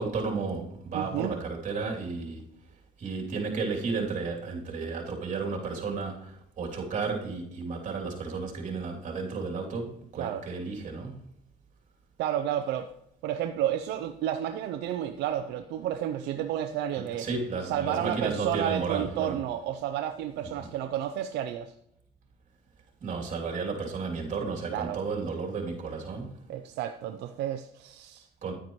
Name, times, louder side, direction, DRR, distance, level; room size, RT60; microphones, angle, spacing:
voice 1, 0.0-2.4 3.0-11.2 17.1-19.3 23.0-26.3 28.4-28.5, right 4 dB, 50° right, -1 dB, 2.9 m, -33 dB
voice 2, 0.9-1.4 10.2-10.4 12.2-12.9 13.2-17.3 17.6-21.7 24.7-25.0 26.5-28.3, right 11 dB, 80° right, 7 dB, 0.6 m, -31 dB
10.0 x 9.4 x 3.1 m, 0.75 s
cardioid pair, 110°, 17 cm